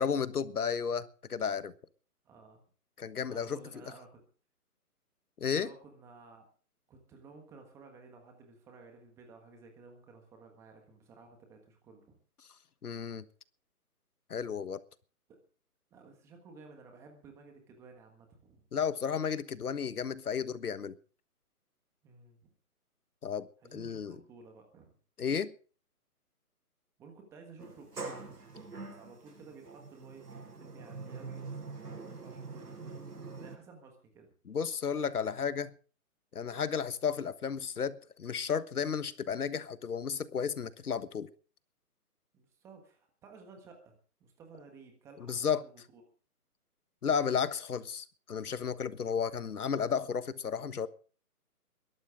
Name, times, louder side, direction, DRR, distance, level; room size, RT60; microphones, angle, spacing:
voice 1, 0.0-1.7 3.0-3.6 5.4-5.7 12.8-13.2 14.3-14.8 18.7-21.0 23.2-24.2 25.2-25.5 34.5-35.7 36.3-41.3 45.3-45.6 47.0-50.9, left 6 dB, 70° left, 1.4 m, -33 dB
voice 2, 2.2-2.6 3.3-4.2 5.5-6.5 6.9-12.2 15.3-15.4 15.9-18.6 22.0-22.5 23.6-25.0 27.0-34.3 42.3-46.0, right 4 dB, 5° right, 1.4 m, -55 dB
Sliding door, 27.6-33.6, right 4 dB, 85° right, 7.9 m, -44 dB
22.5 x 12.5 x 3.7 m
hypercardioid pair, 165°, 46 cm